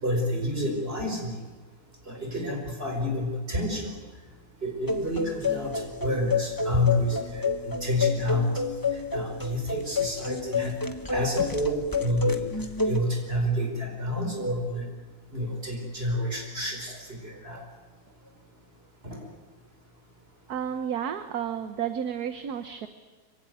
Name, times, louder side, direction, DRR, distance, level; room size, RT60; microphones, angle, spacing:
voice 1, 0.0-1.4 2.1-3.9 4.6-8.5 8.9-10.7 11.1-12.5 12.9-14.9 15.3-17.6 19.0-19.2, left 1 dB, 35° right, 3 dB, 5.0 m, -29 dB
sound 1, 4.9-13.0, left 4 dB, 15° left, 1.2 m, -29 dB
voice 2, 20.5-22.9, right 8 dB, 65° right, 9 dB, 1.5 m, -32 dB
25.0 x 24.0 x 9.2 m, 1.3 s
omnidirectional pair, 1.9 m